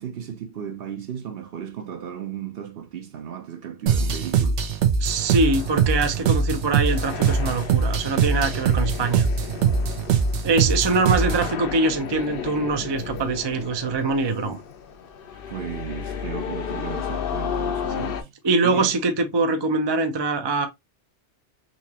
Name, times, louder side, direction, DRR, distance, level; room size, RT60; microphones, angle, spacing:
voice 1, 0.0-4.6 10.8-10.9 15.5-18.3 18.6-19.0, right 8 dB, 60° right, 0.9 m, -35 dB
sound 1, 3.9-11.5, right 6 dB, 85° right, 1.0 m, -22 dB
voice 2, 5.0-9.3 10.4-14.6 18.0-18.1 18.4-20.7, right 3 dB, 35° right, 0.4 m, -23 dB
sound 2, 5.1-18.2, left 7 dB, 60° left, 0.8 m, -34 dB
4.1 x 2.8 x 2.8 m
omnidirectional pair, 1.1 m